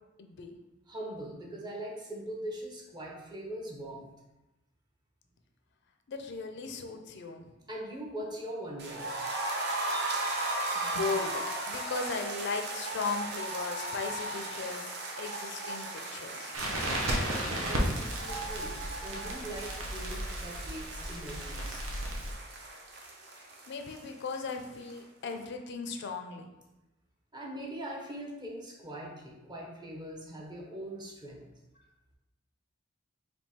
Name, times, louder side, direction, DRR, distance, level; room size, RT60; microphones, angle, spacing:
voice 1, 0.2-0.6 6.1-7.6 10.8-11.3 11.7-16.5 23.7-26.5, left 4 dB, 60° left, 5 dB, 0.4 m, -37 dB
voice 2, 0.9-4.1 7.7-9.1 10.0-10.1 17.2-21.8 27.3-31.4, right 1 dB, 20° right, -1 dB, 0.7 m, -41 dB
sound 1, 8.8-24.6 24.9-25.0 25.3-25.4, right 2 dB, 55° right, 0.6 m, -37 dB
Crackle, 16.5-22.3, right 1 dB, 90° right, 0.8 m, -34 dB
3.5 x 2.7 x 4.2 m, 1.0 s
head